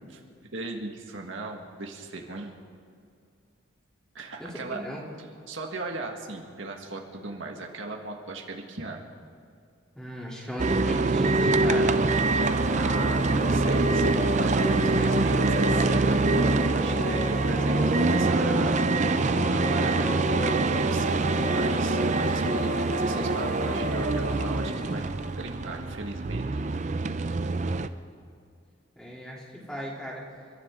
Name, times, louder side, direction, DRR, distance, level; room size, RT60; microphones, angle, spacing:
voice 1, 0.5-2.6 4.1-4.8 5.5-9.0 12.7-19.2 19.5-25.0 25.4-26.4, right 2 dB, 70° right, 2 dB, 1.6 m, -37 dB
voice 2, 4.4-5.1 9.9-12.0 28.9-30.2, equal, 5° left, -5 dB, 3.0 m, -35 dB
sound 1, 10.6-27.9, right 3 dB, 35° right, 0.5 m, -25 dB
sound 2, 11.4-26.1, left 2 dB, 40° left, 1.2 m, -35 dB
29.0 x 13.0 x 3.7 m, 2.4 s
head